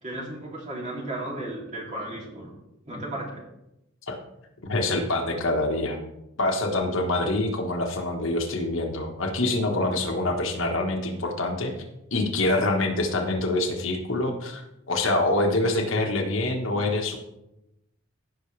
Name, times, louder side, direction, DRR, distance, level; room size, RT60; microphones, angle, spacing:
voice 1, 0.0-2.5 2.8-3.4, right 1 dB, 35° right, -3 dB, 2.9 m, -34 dB
voice 2, 4.6-6.0 6.4-11.7 12.1-17.2, left 2 dB, 70° left, 2 dB, 1.4 m, -25 dB
15.5 x 5.8 x 3.3 m, 0.89 s
head